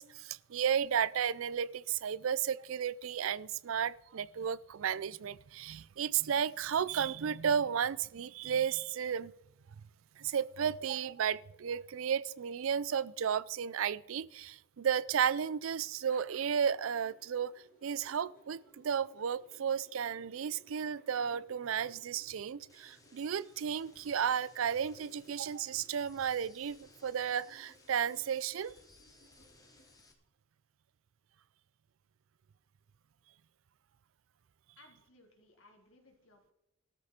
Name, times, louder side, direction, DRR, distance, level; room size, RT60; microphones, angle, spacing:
voice 1, 0.0-9.3 10.2-17.5 17.8-28.7, right 8 dB, 85° right, 0.4 m, -33 dB
sound 1, 16.7-30.0, equal, 40° left, 2.1 m, -65 dB
sound 2, 22.7-30.1, left 2 dB, 15° left, 1.8 m, -63 dB
voice 2, 34.8-36.5, left 2 dB, 85° left, 3.5 m, -62 dB
15.5 x 13.0 x 4.3 m
head